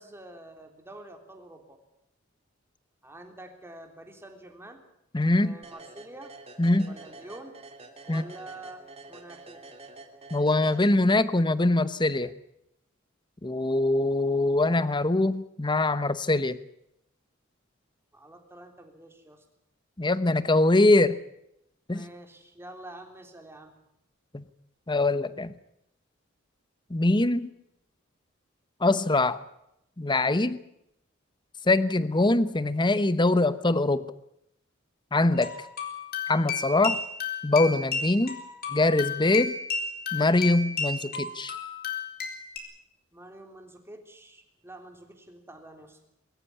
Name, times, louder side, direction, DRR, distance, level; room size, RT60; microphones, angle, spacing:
voice 1, 0.0-1.8 3.0-4.8 5.4-6.3 6.9-7.6 8.1-9.6 18.1-19.4 21.9-23.7 43.1-46.0, right 1 dB, 10° right, 4 dB, 3.5 m, -47 dB
voice 2, 5.1-5.6 6.6-6.9 8.1-8.2 10.3-12.3 13.4-16.6 20.0-21.2 21.9-22.0 24.3-24.4 24.9-25.5 26.9-27.5 28.8-29.4 30.0-30.6 31.7-34.1 35.1-35.5 36.3-37.0 37.4-38.4 38.7-39.6 40.1-41.5, left 2 dB, 25° left, 14 dB, 0.9 m, -23 dB
sound 1, 5.6-11.4, right 2 dB, 30° right, 2.9 m, -48 dB
sound 2, 35.4-42.6, left 5 dB, 50° left, 4.1 m, -33 dB
23.5 x 14.0 x 9.8 m, 0.81 s
head